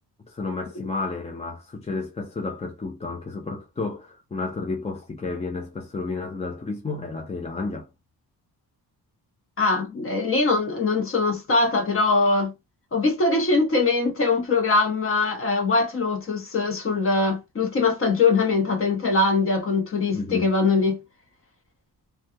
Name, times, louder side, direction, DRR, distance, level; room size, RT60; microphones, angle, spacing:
voice 1, 0.3-7.9 20.1-20.5, left 3 dB, 15° left, 0.5 m, -31 dB
voice 2, 9.6-12.5 12.9-21.0, left 3 dB, 35° left, 0.9 m, -22 dB
3.2 x 2.3 x 2.7 m
wide cardioid pair, 160°, 38 cm